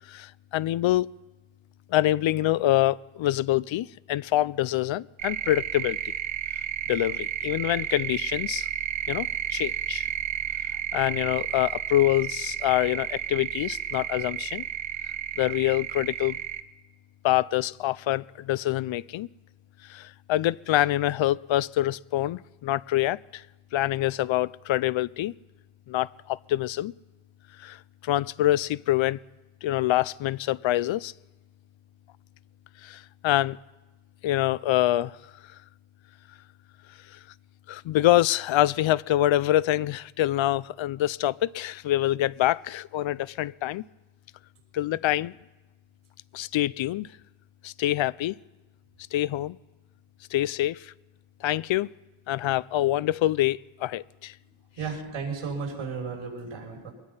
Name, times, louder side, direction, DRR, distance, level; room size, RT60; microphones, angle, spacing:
voice 1, 0.1-1.1 1.9-6.0 6.9-8.7 9.1-10.1 10.9-14.6 15.4-16.4 17.2-19.3 19.9-23.4 23.7-25.3 25.9-26.9 27.6-27.8 28.0-29.2 29.6-31.1 32.8-33.6 34.2-35.2 37.7-43.8 44.7-45.3 46.3-47.1 47.6-48.4 49.1-49.6 50.3-50.9 51.4-51.9 52.3-54.3, left 14 dB, 65° left, 0.6 m, -25 dB
sound 1, 5.2-16.6, right 10 dB, 65° right, 1.2 m, -32 dB
voice 2, 54.8-56.9, right 5 dB, 85° right, 6.6 m, -34 dB
23.0 x 20.5 x 5.6 m
cardioid pair, 95°, 50 cm